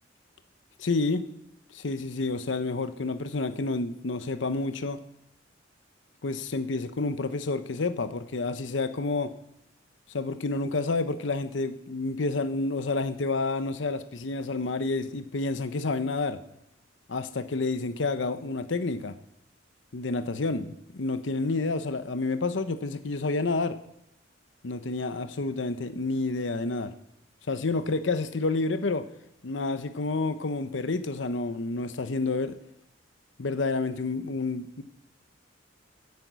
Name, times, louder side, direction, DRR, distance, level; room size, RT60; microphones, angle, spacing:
voice 1, 0.8-1.3 1.7-5.0 6.2-9.3 10.1-16.4 17.1-19.2 19.9-23.8 24.6-26.9 27.5-29.1 29.4-32.6 33.4-34.8, left 3 dB, 75° left, 11 dB, 0.8 m, -29 dB
11.0 x 9.8 x 8.0 m, 0.81 s
head